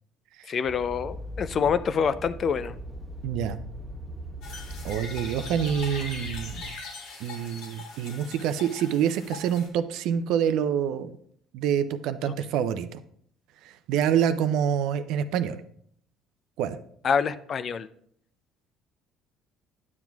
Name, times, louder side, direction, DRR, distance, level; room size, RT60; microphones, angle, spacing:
voice 1, 0.5-2.7 12.2-12.3 17.0-17.9, left 6 dB, 50° left, 14 dB, 0.4 m, -26 dB
sound 1, 0.6-6.7, right 1 dB, 10° right, 1.3 m, -39 dB
voice 2, 3.2-3.6 4.8-6.6 7.2-11.1 11.5-13.0 13.6-15.6 16.6-16.8, right 9 dB, 70° right, 12 dB, 0.4 m, -27 dB
sound 2, 4.4-9.7, left 4 dB, 75° left, 1.7 m, -41 dB
9.4 x 7.1 x 2.3 m, 0.66 s
hypercardioid pair, 65°, 0 cm